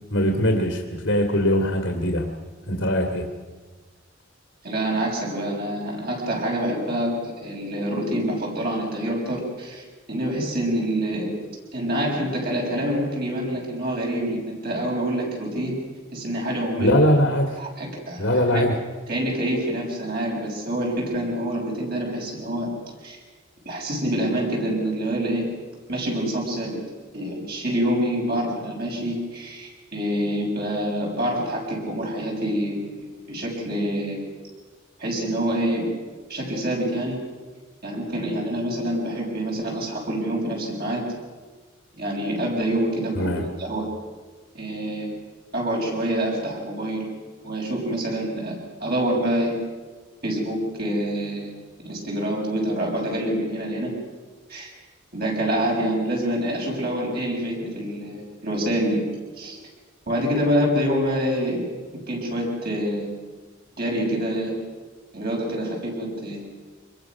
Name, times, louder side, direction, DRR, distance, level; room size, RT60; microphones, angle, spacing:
voice 1, 0.1-2.3 2.7-3.3 16.8-17.6 18.2-18.8 43.1-43.5, equal, 75° left, 3 dB, 2.4 m, -21 dB
voice 2, 4.6-11.3 11.7-15.8 16.1-17.0 17.6-18.7 19.1-22.7 23.0-23.2 23.6-25.5 25.9-26.8 27.1-34.2 35.0-35.9 36.3-37.2 37.8-41.0 42.0-43.9 44.5-45.1 45.5-47.0 47.4-48.5 48.8-49.6 50.2-51.5 51.8-53.9 54.5-54.7 55.1-59.0 59.4-59.6 60.1-61.7 62.1-63.1 63.8-64.5 65.1-66.4, right 1 dB, 50° right, -1 dB, 6.6 m, -26 dB
25.5 x 21.0 x 6.2 m, 1.3 s
head